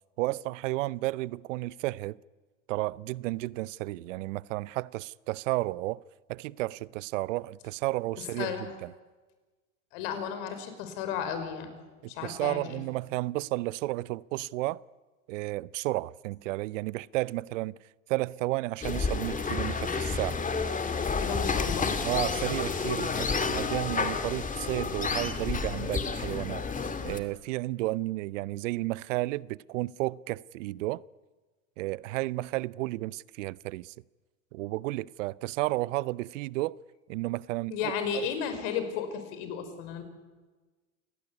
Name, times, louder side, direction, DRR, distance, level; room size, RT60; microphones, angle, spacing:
voice 1, 0.2-2.2 2.7-6.0 6.3-8.5 8.8-8.9 12.0-14.8 15.3-17.8 18.1-20.4 22.0-26.7 27.0-31.0 31.8-33.9 34.5-36.8 37.1-37.9, right 19 dB, 70° right, 0.7 m, -32 dB
voice 2, 8.4-8.7 9.9-11.7 12.1-12.8 21.2-22.0 37.7-40.0, left 7 dB, 65° left, 5.7 m, -34 dB
sound 1, 18.8-27.2, left 4 dB, 20° left, 2.5 m, -30 dB
28.0 x 18.0 x 9.8 m
hypercardioid pair, 90°, 39 cm